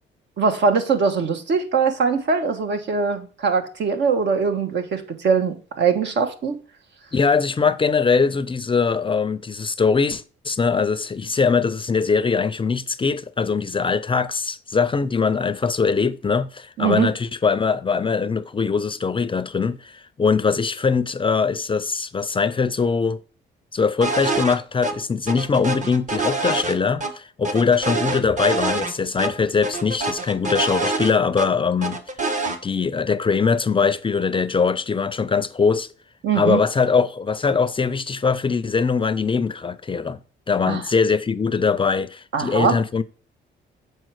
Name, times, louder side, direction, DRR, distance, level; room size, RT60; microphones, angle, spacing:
voice 1, 0.4-6.6 16.8-17.1 36.2-36.6 40.7-40.8 42.3-42.8, right 5 dB, 65° right, 1.3 m, -21 dB
voice 2, 7.1-23.2 23.7-32.0 32.6-35.9 36.3-40.2 40.5-43.0, left 5 dB, 25° left, 0.5 m, -21 dB
sound 1, 24.0-24.6 24.8-24.9 25.3-27.1 27.4-28.9 29.2-29.3 29.6-31.5 31.8-32.6, right 3 dB, 40° right, 1.2 m, -25 dB
7.5 x 4.6 x 4.7 m
cardioid pair, 90°, 20 cm